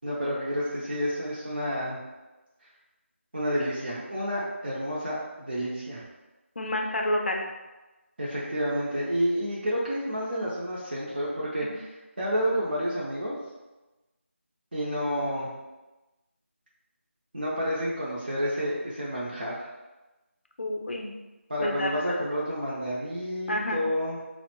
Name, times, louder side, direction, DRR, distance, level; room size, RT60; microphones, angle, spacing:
voice 1, 0.0-2.0 3.3-6.0 8.2-13.4 14.7-15.5 17.3-19.6 21.5-24.2, equal, 45° right, -7 dB, 0.5 m, -30 dB
voice 2, 6.6-7.4 11.6-11.7 20.6-21.1 21.6-22.0 23.5-23.8, left 1 dB, 55° left, 2 dB, 0.4 m, -29 dB
3.5 x 2.0 x 2.9 m, 1.1 s
figure-of-eight pair, 175°, 7 cm